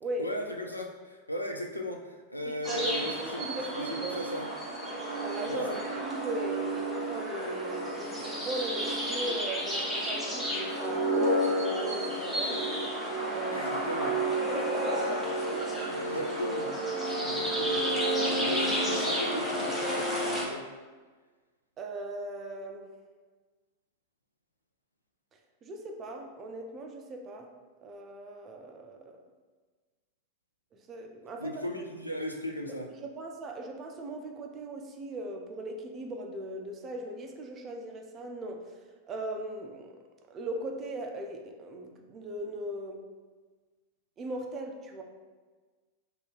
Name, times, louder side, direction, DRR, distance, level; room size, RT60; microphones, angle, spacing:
voice 1, 0.2-4.5 5.5-5.8 13.5-14.2 15.9-16.7 17.2-20.7 31.4-32.9, left 1 dB, 85° left, 1 dB, 0.3 m, -37 dB
voice 2, 2.5-4.2 5.2-5.7 6.0-12.7 13.3-13.7 14.5-14.8 15.4-15.7 21.8-22.9 25.6-27.5 27.8-29.2 30.7-31.7 32.7-38.6 39.1-40.0 40.3-43.0 44.2-45.0, right 1 dB, 25° right, 3 dB, 0.4 m, -38 dB
sound 1, 2.6-20.4, right 1 dB, 5° left, 1.0 m, -31 dB
2.7 x 2.3 x 3.3 m, 1.4 s
figure-of-eight pair, 90°, 0 cm